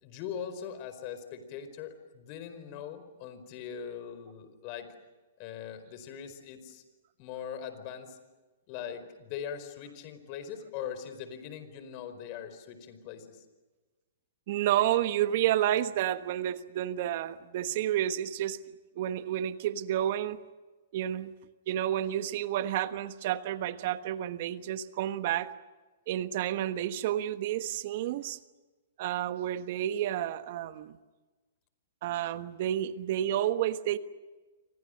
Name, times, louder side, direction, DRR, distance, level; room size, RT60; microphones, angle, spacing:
voice 1, 0.0-4.9 5.4-6.8 7.2-8.2 8.7-13.4, left 8 dB, 40° left, 10 dB, 4.7 m, -41 dB
voice 2, 14.5-18.6 18.9-20.4 20.9-21.3 21.7-25.5 26.1-28.4 29.0-31.0 32.0-34.0, right 12 dB, 55° right, 12 dB, 1.3 m, -30 dB
29.0 x 25.0 x 6.6 m, 1.2 s
hypercardioid pair, 120°, 0 cm